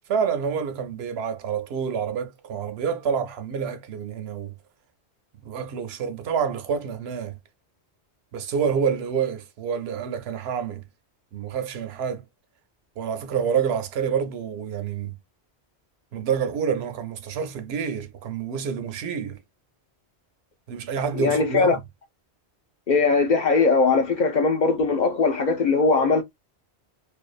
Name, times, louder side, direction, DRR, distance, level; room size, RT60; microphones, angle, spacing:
voice 1, 0.1-4.5 5.4-7.3 8.3-10.8 11.3-12.2 13.0-15.1 16.1-19.4 20.7-21.8, right 7 dB, 75° right, 0.8 m, -28 dB
voice 2, 21.1-21.8 22.9-26.2, left 4 dB, 55° left, 0.5 m, -20 dB
2.5 x 2.3 x 2.3 m
omnidirectional pair, 1.1 m